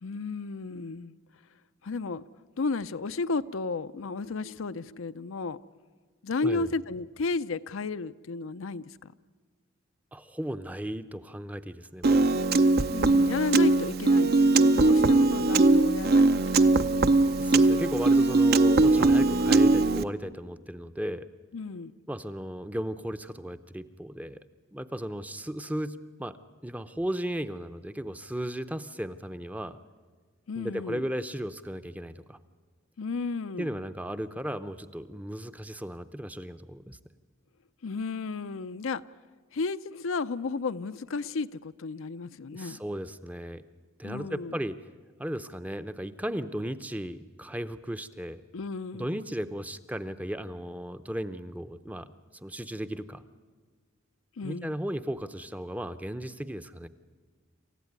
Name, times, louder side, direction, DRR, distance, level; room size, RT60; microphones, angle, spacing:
voice 1, 0.0-1.1 1.8-2.3 2.6-5.6 6.2-9.1 12.9-16.7 21.5-21.9 30.5-31.0 33.0-33.7 37.8-39.0 39.5-42.8 44.0-44.6 48.5-49.2 54.4-54.8, left 4 dB, 80° left, 0.6 m, -33 dB
voice 2, 10.1-12.3 17.4-21.3 22.1-24.4 24.7-26.4 26.6-29.8 30.5-32.4 33.6-37.0 42.5-43.6 44.0-44.8 45.2-48.4 48.9-53.2 54.4-56.9, equal, 5° right, 0.6 m, -35 dB
Piano, 12.0-20.0, right 3 dB, 50° right, 0.6 m, -21 dB
27.5 x 15.0 x 9.5 m
head